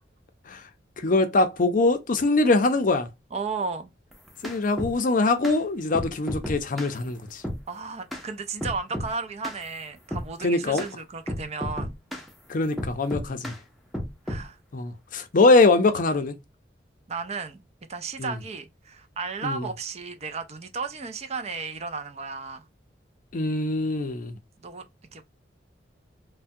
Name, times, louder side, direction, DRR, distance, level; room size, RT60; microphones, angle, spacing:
voice 1, 1.0-3.1 4.4-7.4 10.4-10.8 12.5-13.5 14.7-16.4 18.2-18.3 19.4-19.7 23.3-24.3, left 3 dB, 50° left, 0.5 m, -22 dB
voice 2, 3.3-3.9 7.7-11.9 14.3-14.6 17.1-17.6 17.9-22.7 24.6-24.8 25.1-25.3, right 4 dB, 35° right, 0.5 m, -34 dB
sound 1, 4.1-5.0 5.4-5.6 5.9-7.0 7.4-7.6 8.1-8.3 8.6-9.1 9.4-9.6 10.1-10.3 10.8-10.9 11.3-12.3 12.8-13.6 13.9-14.5, equal, ahead, 0.7 m, -33 dB
3.3 x 2.2 x 2.6 m
head